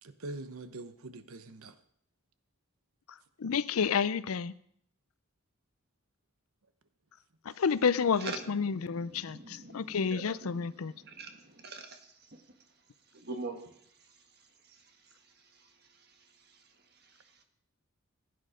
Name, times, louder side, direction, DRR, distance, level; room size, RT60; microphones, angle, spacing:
voice 1, 0.0-1.7, right 2 dB, 90° right, 1.0 m, -43 dB
voice 2, 3.4-4.5 7.5-10.9, left 6 dB, 85° left, 0.5 m, -30 dB
voice 3, 8.2-12.0 13.1-13.6, right 3 dB, 50° right, 1.6 m, -43 dB
15.5 x 9.5 x 5.1 m
head